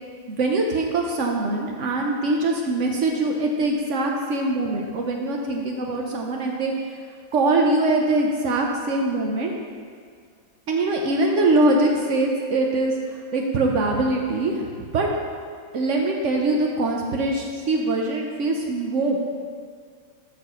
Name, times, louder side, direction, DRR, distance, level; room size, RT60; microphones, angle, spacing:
voice 1, 0.3-6.7 7.3-9.5 10.7-15.1 15.7-19.2, right 2 dB, 85° right, 1 dB, 0.6 m, -23 dB
12.0 x 6.2 x 3.0 m, 2.1 s
omnidirectional pair, 2.2 m